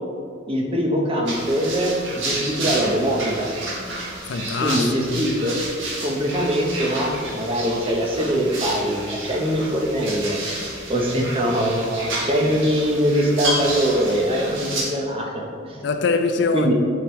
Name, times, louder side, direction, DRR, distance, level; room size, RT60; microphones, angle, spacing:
voice 1, 0.5-3.5 4.6-5.6 6.0-15.8 16.5-16.7, equal, 30° right, 0.8 m, -22 dB
sound 1, 1.2-14.8, right 2 dB, 80° right, 1.4 m, -30 dB
voice 2, 4.3-5.3 15.8-16.7, left 4 dB, 60° left, 0.4 m, -23 dB
7.9 x 4.7 x 3.1 m
head